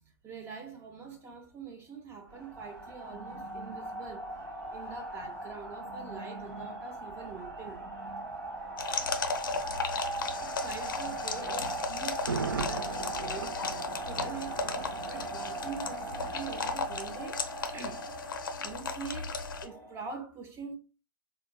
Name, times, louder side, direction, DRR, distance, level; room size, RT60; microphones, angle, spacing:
voice 1, 0.2-4.2 4.7-7.8 10.4-13.6 14.1-17.4 17.7-18.0 18.6-20.8, right 5 dB, 20° right, 0.6 m, -44 dB
sound 1, 2.3-20.0, right 2 dB, 55° right, 1.1 m, -40 dB
sound 2, 8.8-19.7, left 4 dB, 70° left, 0.5 m, -36 dB
Thunder, 12.1-16.0 16.3-16.4, right 5 dB, 70° right, 0.5 m, -39 dB
3.9 x 2.1 x 2.2 m
figure-of-eight pair, 105°, 11 cm